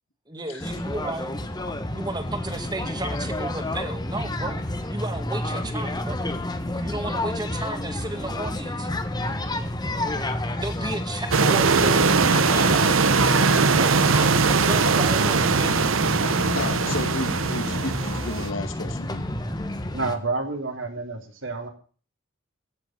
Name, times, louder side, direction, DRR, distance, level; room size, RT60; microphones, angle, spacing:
voice 1, 0.3-1.3 1.9-4.6 4.9-6.3 6.7-8.9 10.5-12.0 13.8-14.3 14.6-15.8, right 2 dB, 20° right, 7 dB, 2.0 m, -33 dB
sound 1, 0.6-20.2, left 1 dB, 20° left, 1.3 m, -30 dB
sound 2, 11.3-18.5, right 4 dB, 85° right, 1.0 m, -21 dB
voice 2, 16.3-19.2, left 2 dB, 80° left, 7 dB, 2.4 m, -33 dB
voice 3, 19.9-21.7, right 3 dB, 70° right, 4 dB, 3.3 m, -29 dB
15.5 x 7.1 x 9.1 m, 0.40 s
head